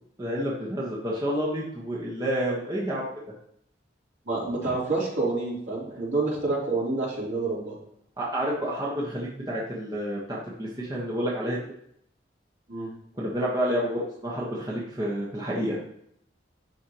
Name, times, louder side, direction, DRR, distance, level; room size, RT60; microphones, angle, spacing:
voice 1, 0.2-3.0 8.2-11.6 13.2-15.8, equal, 20° right, -6 dB, 1.3 m, -29 dB
voice 2, 4.2-7.8 12.7-12.9, right 3 dB, 75° right, -7 dB, 3.4 m, -28 dB
11.5 x 4.6 x 3.0 m, 0.69 s
head